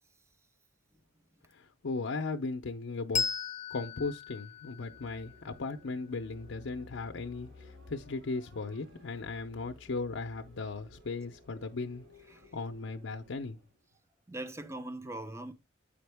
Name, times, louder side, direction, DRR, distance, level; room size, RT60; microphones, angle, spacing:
voice 1, 1.5-3.2 3.7-12.0 12.5-13.6, left 3 dB, 75° left, 0.6 m, -37 dB
Bell, 3.1-6.2, left 6 dB, 35° left, 0.5 m, -37 dB
sound 1, 4.5-13.8, left 2 dB, 70° right, 4.1 m, -56 dB
voice 2, 14.3-15.5, right 1 dB, 15° right, 0.8 m, -41 dB
8.6 x 5.1 x 3.4 m
head